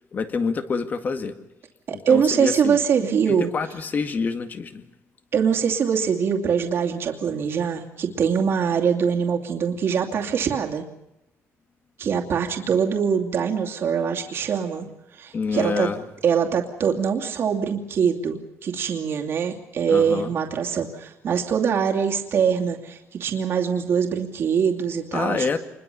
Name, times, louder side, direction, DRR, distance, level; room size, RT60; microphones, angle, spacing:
voice 1, 0.1-1.3 1.9-2.8 3.3-4.9 15.3-16.0 19.9-20.3 25.1-25.6, left 5 dB, 35° left, 9 dB, 2.0 m, -27 dB
voice 2, 1.9-3.5 5.3-10.8 12.0-14.9 15.1-15.9 16.2-25.5, right 7 dB, 50° right, 1 dB, 2.6 m, -23 dB
27.0 x 21.5 x 7.0 m, 0.90 s
cardioid pair, 145°, 5 cm